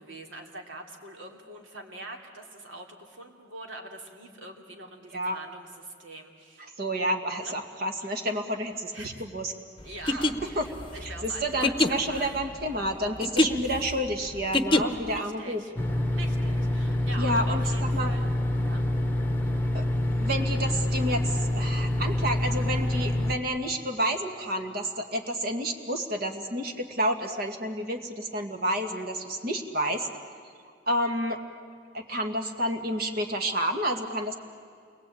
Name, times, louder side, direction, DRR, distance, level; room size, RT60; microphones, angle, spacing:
voice 1, 0.0-6.7 7.4-7.6 8.9-9.3 9.8-12.5 15.1-15.7 16.2-18.2 18.6-18.8, right 2 dB, 75° right, 2 dB, 3.1 m, -43 dB
voice 2, 6.8-9.5 10.1-10.2 10.6-10.7 11.0-15.6 17.2-18.1 19.7-30.1 30.9-31.4 31.9-34.3, equal, 50° right, 5 dB, 2.1 m, -30 dB
sound 1, 9.9-15.2, left 1 dB, 25° left, 1.0 m, -26 dB
sound 2, 15.8-23.4, left 1 dB, 10° left, 1.2 m, -26 dB
28.5 x 21.5 x 8.7 m, 2.2 s
head